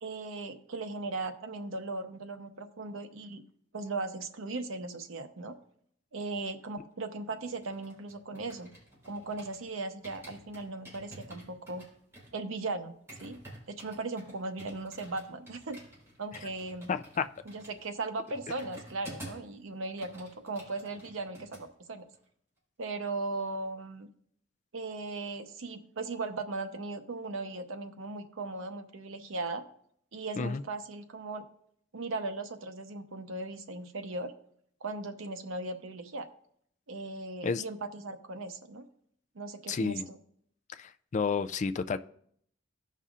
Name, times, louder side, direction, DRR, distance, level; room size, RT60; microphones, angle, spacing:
voice 1, 0.0-3.4 3.7-5.6 6.1-8.7 9.1-11.8 12.3-13.4 13.7-15.8 16.2-16.9 17.5-22.1 22.8-24.1 24.7-29.6 30.1-31.5 31.9-34.3 34.8-36.3 36.9-38.9 39.3-40.2, right 3 dB, 90° right, 7 dB, 0.8 m, -38 dB
sound 1, 7.4-9.7 10.0-19.5 19.8-21.6 21.9-22.2, right 1 dB, 15° right, 4.0 m, -50 dB
voice 2, 16.9-17.3 30.4-30.6 37.4-37.6 39.7-40.0 40.7-42.0, left 5 dB, 40° left, 11 dB, 0.4 m, -31 dB
16.5 x 5.5 x 2.4 m, 0.66 s
head